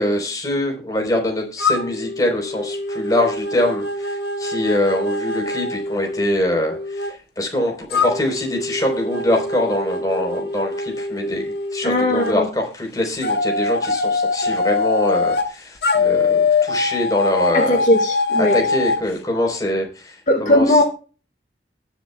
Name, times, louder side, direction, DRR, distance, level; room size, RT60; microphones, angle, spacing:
voice 1, 0.0-17.8 18.4-20.8, left 1 dB, 20° left, 2 dB, 4.1 m, -23 dB
sound 1, 1.6-7.1 7.9-12.3 13.2-15.5 15.8-19.0, left 3 dB, 65° left, 1.6 m, -23 dB
voice 2, 11.8-12.5 17.5-18.7 20.3-20.8, left 1 dB, 45° left, 2 dB, 1.7 m, -18 dB
20.5 x 7.4 x 2.3 m, 0.36 s
head